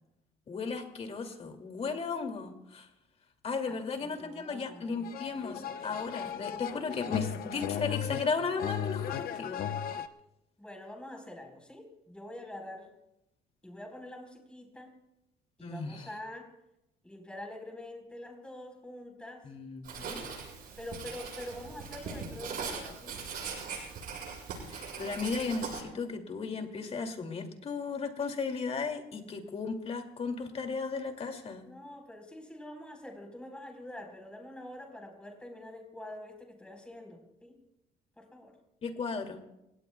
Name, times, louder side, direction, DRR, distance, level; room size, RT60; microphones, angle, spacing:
voice 1, 0.5-2.9 3.4-9.6 15.6-16.1 19.4-20.3 24.7-31.6 38.8-39.4, left 4 dB, 35° left, 5 dB, 2.5 m, -35 dB
voice 2, 3.7-5.1 10.6-12.9 13.6-15.0 15.6-16.5 17.0-19.5 20.0-20.3 20.8-23.2 31.6-37.6 38.2-38.6, left 1 dB, 5° left, 2 dB, 4.3 m, -46 dB
sound 1, 5.0-10.1, left 9 dB, 60° left, 0.9 m, -36 dB
Writing, 19.8-25.8, right 5 dB, 60° right, 7.8 m, -40 dB
30.0 x 17.5 x 2.3 m, 0.88 s
cardioid pair, 110°, 17 cm